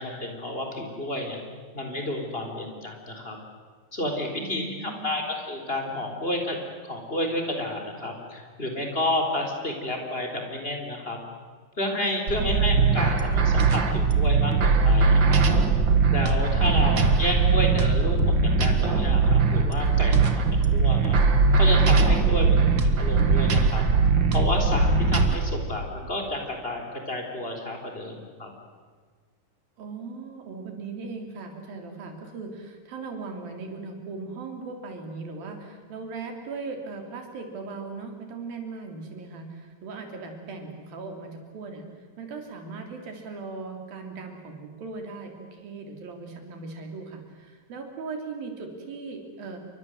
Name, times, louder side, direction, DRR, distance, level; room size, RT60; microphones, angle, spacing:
voice 1, 0.0-1.4 1.7-3.4 3.9-11.2 11.8-15.4 16.1-18.3 18.6-20.4 20.7-21.2 21.5-22.6 23.0-23.8 24.3-28.5, left 1 dB, 15° left, 2 dB, 3.9 m, -30 dB
voice 2, 4.3-5.2 12.4-12.8 16.5-17.6 20.6-20.7 22.4-22.7 29.8-41.9 42.2-49.6, right 4 dB, 85° right, 4 dB, 5.2 m, -38 dB
sound 1, 12.3-25.3, right 4 dB, 40° right, 1.9 m, -20 dB
28.5 x 24.0 x 8.0 m, 1.6 s
omnidirectional pair, 4.0 m